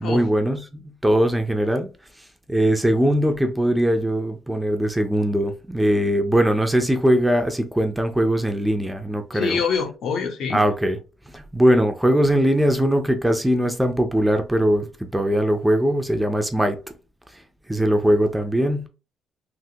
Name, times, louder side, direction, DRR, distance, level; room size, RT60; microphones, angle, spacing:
voice 1, 0.0-1.9 2.5-9.6 10.5-11.0 11.3-16.8 17.7-18.9, equal, 5° right, 0.4 m, -21 dB
voice 2, 9.3-10.6, left 6 dB, 65° left, 0.8 m, -25 dB
3.3 x 2.5 x 2.8 m
cardioid pair, 130°, 0 cm